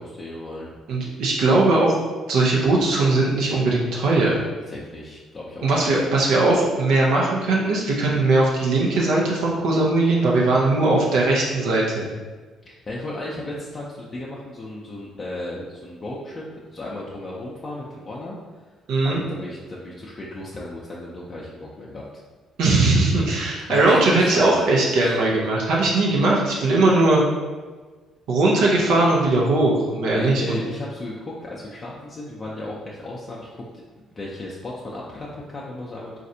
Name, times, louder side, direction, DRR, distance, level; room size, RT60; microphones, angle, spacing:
voice 1, 0.0-0.8 4.7-6.0 12.6-16.4 16.7-18.4 19.0-22.0 23.7-24.7 25.0-25.1 30.1-33.6 34.2-36.2, left 1 dB, 40° left, -5 dB, 0.5 m, -34 dB
voice 2, 0.9-2.0 2.3-4.4 5.6-12.1 18.9-19.2 22.6-27.2 28.3-30.6, right 2 dB, 70° right, -3 dB, 0.6 m, -19 dB
4.0 x 2.5 x 2.6 m, 1.3 s
hypercardioid pair, 50°, 0 cm